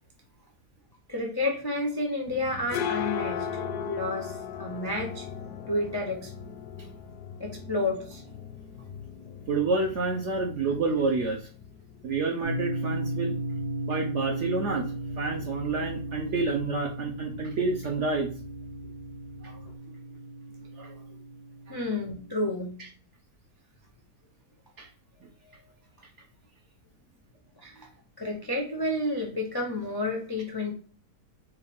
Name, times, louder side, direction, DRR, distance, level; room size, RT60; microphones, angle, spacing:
voice 1, 1.1-3.4 3.9-5.3 5.7-6.3 7.4-8.2 21.7-22.7 27.6-27.9 28.2-30.7, left 2 dB, 40° left, 0 dB, 0.3 m, -30 dB
sound 1, 2.3-19.8, left 7 dB, 75° left, 1.0 m, -39 dB
voice 2, 9.5-11.5 12.0-13.4 13.9-18.3 19.4-19.6 19.9-20.0 20.8-20.9 22.8-22.9 24.8-24.9 25.2-25.3, right 3 dB, 65° right, 2 dB, 0.7 m, -29 dB
sound 2, 12.4-22.6, right 2 dB, 85° right, 2.4 m, -36 dB
4.7 x 2.5 x 3.4 m, 0.42 s
omnidirectional pair, 1.7 m